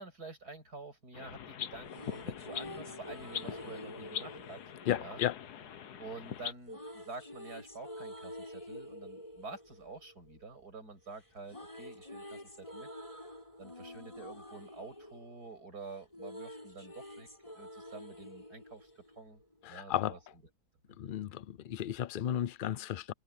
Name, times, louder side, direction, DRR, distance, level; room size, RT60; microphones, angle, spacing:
voice 1, 0.0-4.6 5.0-5.2 6.0-12.9 13.6-17.3 17.5-18.9 19.2-19.4 19.7-20.2, right 3 dB, 80° right, 7.4 m, -48 dB
sound 1, 1.1-6.5, left 9 dB, 80° left, 1.6 m, -42 dB
sound 2, 1.6-5.8 6.6-10.9 11.1-19.7, left 1 dB, 20° left, 7.9 m, -48 dB
voice 2, 4.9-5.4 19.6-20.1 21.0-23.1, left 11 dB, 65° left, 0.5 m, -34 dB
omnidirectional pair, 1.7 m